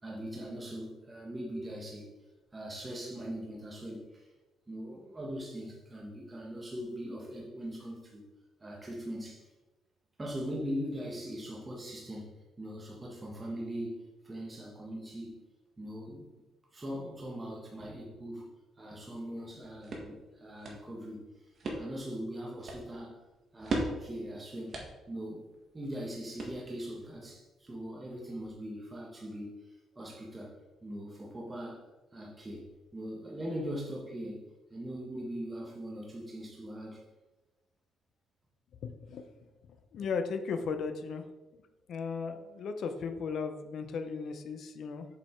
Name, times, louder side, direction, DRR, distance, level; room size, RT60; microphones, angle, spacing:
voice 1, 0.0-2.1 2.5-4.3 4.7-8.2 8.6-9.5 10.2-15.4 15.8-16.3 16.7-18.5 18.8-23.2 23.5-24.8 25.1-25.5 25.7-30.5 30.8-31.8 32.1-32.7 32.9-37.0, equal, 15° right, -3 dB, 1.3 m, -41 dB
sound 1, 19.4-27.0, right 2 dB, 40° right, 1.6 m, -41 dB
voice 2, 38.8-39.2 39.9-41.2 41.9-45.1, left 5 dB, 55° left, 7 dB, 0.7 m, -36 dB
7.4 x 5.1 x 4.5 m, 1.1 s
cardioid pair, 150°, 0 cm